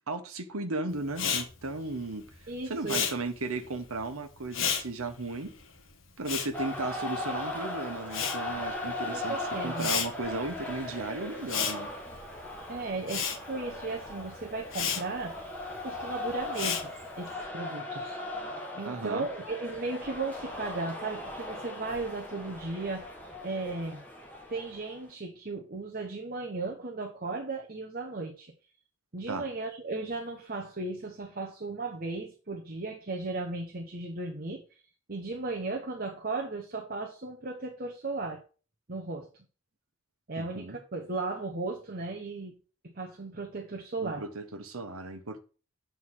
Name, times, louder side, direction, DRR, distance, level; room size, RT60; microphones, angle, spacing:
voice 1, 0.1-2.3 2.7-5.5 6.2-9.4 9.6-11.9 18.9-19.3 29.3-29.5 40.4-40.8 44.0-45.4, right 2 dB, 80° right, 1.2 m, -35 dB
Respiratory sounds, 1.1-7.6 7.8-17.3, left 7 dB, 65° left, 1.3 m, -34 dB
voice 2, 2.5-3.1 9.1-9.9 12.7-15.4 15.8-16.9 17.2-18.2 18.7-23.1 23.4-24.0 24.5-28.5 29.1-34.8 35.1-38.4 38.9-39.3 40.3-42.5 42.8-44.2, right 3 dB, 45° right, 1.1 m, -36 dB
sound 1, 6.5-25.1, left 2 dB, 10° left, 1.7 m, -39 dB
8.0 x 4.7 x 6.3 m
head